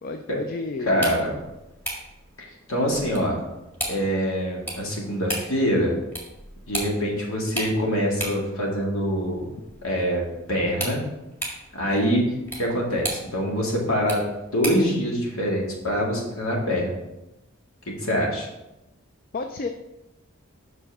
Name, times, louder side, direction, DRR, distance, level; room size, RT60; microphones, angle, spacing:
voice 1, 0.0-1.0 19.3-19.7, left 3 dB, 45° left, 6 dB, 0.4 m, -31 dB
voice 2, 0.8-1.3 2.4-3.4 3.9-6.0 6.7-9.4 9.8-11.0 11.7-12.3 12.5-14.2 14.5-16.9 17.9-18.5, equal, 85° left, -2 dB, 2.0 m, -24 dB
sound 1, 0.8-15.0, right 1 dB, 10° left, 1.7 m, -37 dB
6.1 x 5.6 x 4.7 m, 0.95 s
head